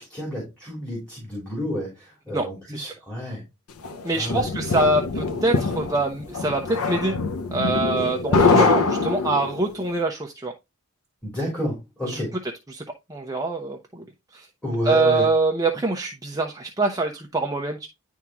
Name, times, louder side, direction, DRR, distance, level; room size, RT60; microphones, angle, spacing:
voice 1, 0.0-3.4 4.1-4.5 8.5-8.7 11.2-12.4 14.6-15.3, equal, 5° left, -4 dB, 3.3 m, -29 dB
voice 2, 2.3-2.9 4.0-7.2 7.5-10.5 12.1-12.2 12.7-12.8 13.1-14.0 14.3-14.5 14.8-17.9, right 2 dB, 15° right, 1 dB, 0.8 m, -24 dB
sound 1, 3.8-9.7, left 3 dB, 85° left, 0.8 m, -23 dB
10.5 x 3.6 x 3.0 m, 0.23 s
head